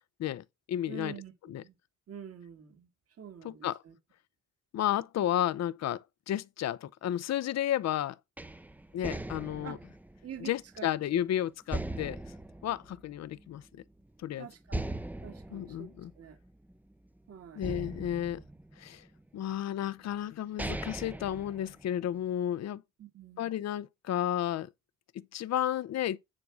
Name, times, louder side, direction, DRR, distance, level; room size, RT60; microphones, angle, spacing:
voice 1, 0.2-1.2 1.5-1.6 3.4-3.8 4.7-8.2 8.9-9.8 10.4-12.2 12.6-13.8 14.2-14.5 15.5-16.1 17.5-18.4 18.8-19.0 19.3-22.8 23.4-24.7 25.1-26.2, left 11 dB, 60° left, 0.7 m, -32 dB
voice 2, 0.9-1.8 2.1-2.9 3.2-3.9 9.6-9.8 10.2-11.2 14.4-14.6 14.9-15.9 16.2-16.4 17.3-17.7 23.0-23.5, right 8 dB, 50° right, 2.1 m, -46 dB
sound 1, 8.4-11.2 11.7-13.6 14.0-14.1 14.7-17.1 17.6-19.2 19.9-20.0 20.4-22.2, right 1 dB, 5° right, 0.6 m, -40 dB
9.8 x 3.7 x 6.2 m
cardioid pair, 90°, 30 cm